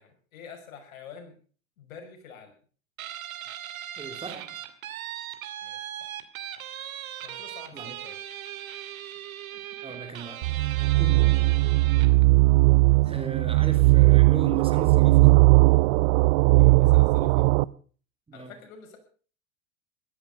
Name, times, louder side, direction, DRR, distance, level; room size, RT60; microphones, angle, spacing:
voice 1, 0.0-1.3 1.8-2.5 5.6-6.2 7.2-8.2 9.5-9.6 10.1-10.3 12.9-13.0 16.5-17.5 18.3-19.0, left 6 dB, 70° left, 4 dB, 6.1 m, -47 dB
Guitar, 3.0-12.2, right 11 dB, 75° right, 2.8 m, -39 dB
voice 2, 4.0-4.6 7.7-8.0 9.3-9.4 9.8-10.4 11.0-11.3 13.0-15.4 18.3-18.5, right 4 dB, 15° right, 6 dB, 3.0 m, -37 dB
sound 1, 10.4-17.6, right 21 dB, 50° right, 0.7 m, -19 dB
15.5 x 13.0 x 5.6 m, 0.42 s
hypercardioid pair, 115°, 42 cm